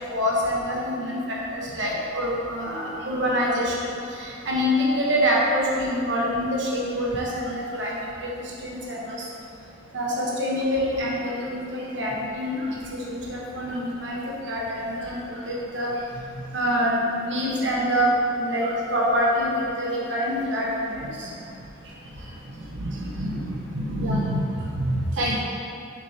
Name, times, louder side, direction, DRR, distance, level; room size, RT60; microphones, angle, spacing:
voice 1, 0.0-8.3 8.6-9.2 9.9-15.9 16.5-18.1 18.3-21.3 25.2-25.4, equal, 65° right, -4 dB, 1.3 m, -26 dB
voice 2, 22.5-25.4, equal, 80° right, -4 dB, 0.6 m, -27 dB
7.0 x 6.0 x 2.9 m, 2.6 s
head